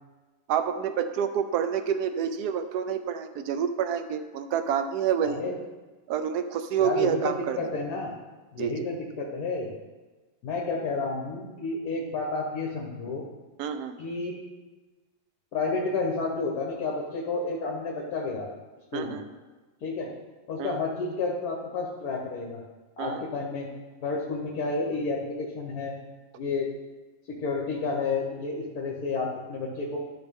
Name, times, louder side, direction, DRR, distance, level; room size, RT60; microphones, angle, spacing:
voice 1, 0.5-5.4 6.1-7.6 8.6-8.9 13.6-14.0 18.9-19.3 20.6-20.8 23.0-23.3, right 8 dB, 80° right, 9 dB, 1.2 m, -28 dB
voice 2, 6.8-8.1 8.5-9.7 10.4-13.3 14.0-14.3 15.5-18.5 18.9-19.2 19.8-20.1 20.5-22.6 23.0-23.7 24.0-26.0 26.3-26.7 27.3-30.0, left 3 dB, 65° left, -1 dB, 1.5 m, -31 dB
13.0 x 5.8 x 3.7 m, 1.3 s
omnidirectional pair, 1.7 m